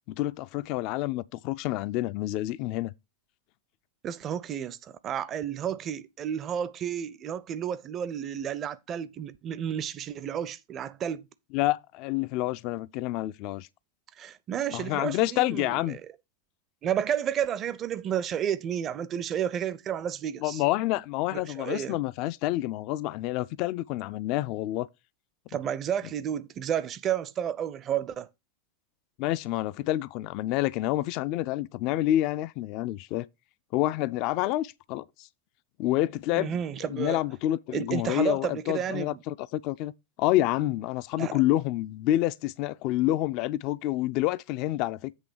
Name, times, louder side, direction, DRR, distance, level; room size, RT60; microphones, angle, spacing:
voice 1, 0.1-2.9 11.5-13.7 14.7-16.0 20.4-24.9 29.2-33.3 33.7-35.3 35.8-36.6 36.9-39.9 40.2-45.1, left 15 dB, 40° left, 0.4 m, -28 dB
voice 2, 4.0-11.3 14.2-16.0 16.8-20.6 21.3-22.0 25.5-28.3 36.3-37.2 37.7-39.2 41.2-41.4, right 9 dB, 30° right, 0.6 m, -31 dB
8.1 x 3.3 x 6.4 m
figure-of-eight pair, 90°, 0 cm